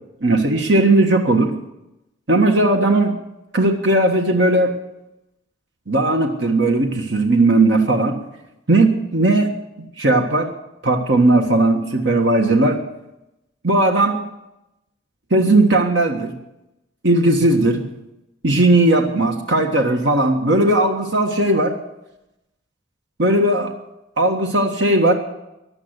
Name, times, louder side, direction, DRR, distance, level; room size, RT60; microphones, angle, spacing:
voice 1, 0.2-1.5 2.3-3.1 3.5-4.7 5.9-8.2 8.7-9.5 9.8-10.5 10.8-12.8 13.6-14.2 15.3-16.3 17.0-17.8 18.4-21.7 23.2-23.7 24.2-25.1, right 2 dB, 65° right, 3 dB, 1.6 m, -17 dB
15.5 x 10.5 x 8.1 m, 0.91 s
head